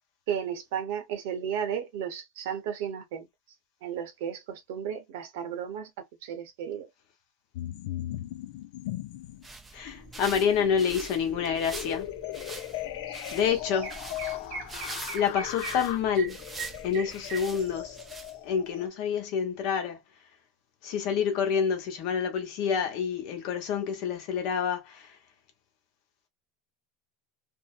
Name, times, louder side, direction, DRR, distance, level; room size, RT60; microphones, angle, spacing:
voice 1, 0.3-3.3 3.8-5.9 6.2-6.9, right 8 dB, 70° right, 0.8 m, -34 dB
sound 1, 7.5-9.4 9.8-18.9, left 13 dB, 75° left, 0.4 m, -39 dB
sound 2, 9.2-18.7, right 2 dB, 10° right, 0.4 m, -44 dB
voice 2, 9.7-12.1 13.3-13.9 15.1-16.4 16.8-18.0 18.4-20.0 20.8-25.2, left 7 dB, 50° left, 0.9 m, -28 dB
Chirp tweet, 13.1-13.2 13.5-18.0, right 5 dB, 40° right, 0.7 m, -41 dB
2.7 x 2.0 x 2.4 m
supercardioid pair, 160°, 0 cm